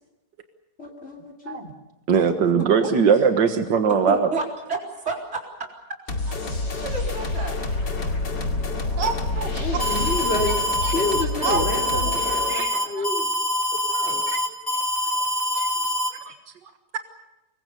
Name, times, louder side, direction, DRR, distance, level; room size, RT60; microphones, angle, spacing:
voice 1, 0.8-1.7 9.6-10.6 10.9-13.3 13.7-14.2, left 1 dB, 35° left, 2 dB, 3.4 m, -29 dB
voice 2, 2.1-4.3 9.0-9.7 10.8-10.9 11.4-11.6 12.5-13.0 14.3-14.4 15.5-15.7 16.3-16.4, right 6 dB, 85° right, 6 dB, 2.1 m, -21 dB
voice 3, 2.6-2.9 4.1-5.7 6.1-6.2 6.7-7.6 8.0-8.1 8.7-9.0, right 3 dB, 40° right, 0 dB, 4.4 m, -31 dB
sound 1, 6.1-12.6, left 2 dB, 90° left, 3.1 m, -29 dB
sound 2, 6.2-11.5, left 3 dB, 75° left, 5.5 m, -33 dB
Alarm, 9.8-16.1, left 1 dB, 10° right, 4.2 m, -25 dB
27.0 x 22.0 x 6.9 m, 1.0 s
omnidirectional pair, 1.9 m